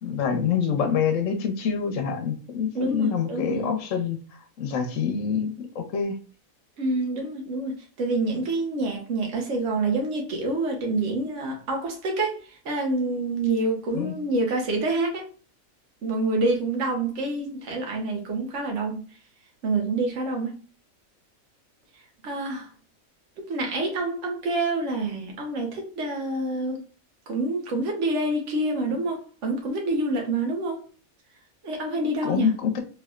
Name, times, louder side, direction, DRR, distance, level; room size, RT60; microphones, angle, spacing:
voice 1, 0.0-4.2 4.6-6.2 13.9-14.1 32.2-32.8, left 6 dB, 65° left, 1.1 m, -26 dB
voice 2, 2.7-3.7 6.8-15.3 16.0-19.1 19.6-20.6 22.2-22.7 23.4-26.8 27.3-30.8 31.6-32.5, right 2 dB, 60° right, 1.3 m, -27 dB
3.4 x 3.2 x 2.4 m
omnidirectional pair, 1.5 m